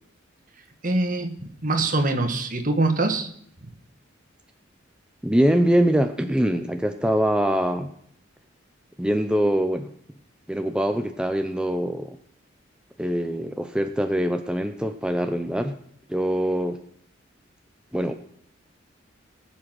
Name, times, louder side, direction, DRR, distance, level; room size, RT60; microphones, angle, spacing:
voice 1, 0.8-1.3 1.6-3.3, right 2 dB, 40° right, 6 dB, 1.5 m, -23 dB
voice 2, 5.2-7.9 9.0-9.9 10.5-12.2 13.0-15.8 16.1-16.8 17.9-18.1, equal, 5° right, 6 dB, 0.5 m, -23 dB
19.0 x 7.8 x 6.2 m, 0.67 s
head